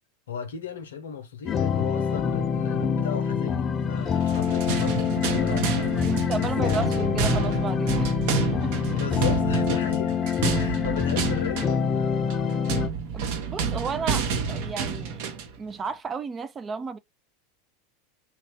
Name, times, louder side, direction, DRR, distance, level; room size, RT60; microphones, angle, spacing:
voice 1, 0.3-6.8 8.9-12.4, left 8 dB, 80° left, 0.7 m, -35 dB
sound 1, 1.5-12.9, left 7 dB, 30° left, 0.4 m, -26 dB
sound 2, 4.1-15.6, right 5 dB, 60° right, 0.8 m, -29 dB
voice 2, 6.0-8.2 8.6-8.7 13.1-15.2 15.6-17.0, right 5 dB, 25° right, 0.4 m, -33 dB
3.1 x 2.4 x 3.2 m
hypercardioid pair, 90°, 0 cm